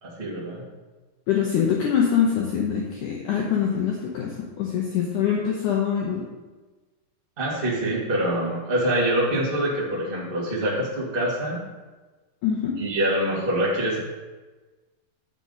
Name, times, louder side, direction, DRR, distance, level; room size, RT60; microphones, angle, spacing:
voice 1, 0.0-0.6 7.4-11.6 12.8-14.0, right 1 dB, 25° right, -6 dB, 1.1 m, -25 dB
voice 2, 1.3-6.2 12.4-12.8, left 8 dB, 75° left, -2 dB, 2.0 m, -24 dB
8.1 x 6.2 x 4.0 m, 1.2 s
omnidirectional pair, 4.4 m